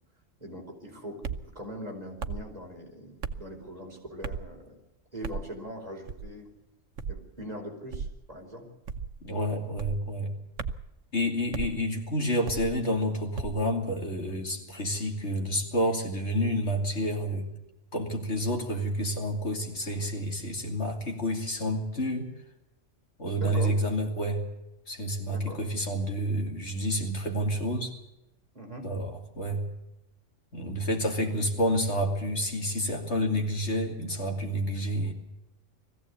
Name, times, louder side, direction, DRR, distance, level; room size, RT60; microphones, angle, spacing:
voice 1, 0.4-4.8 5.1-6.5 7.1-8.7 23.4-23.8 25.3-25.6 28.5-28.9, equal, 30° right, 0 dB, 4.7 m, -41 dB
sound 1, 1.2-1.5 2.2-2.5 3.2-3.5 4.2-4.5 5.2-5.5 6.1-6.4 7.0-7.2 7.9-8.2 8.9-9.2 9.8-10.0 10.6-10.9 11.5-11.7 12.4-12.8 13.4-13.6, right 5 dB, 90° right, 1.3 m, -35 dB
voice 2, 9.2-10.3 11.1-17.5 17.9-22.3 23.2-24.4 24.9-27.9 28.8-29.7 30.5-35.1, equal, 60° left, 2 dB, 2.9 m, -29 dB
21.0 x 15.5 x 8.3 m, 0.93 s
omnidirectional pair, 1.3 m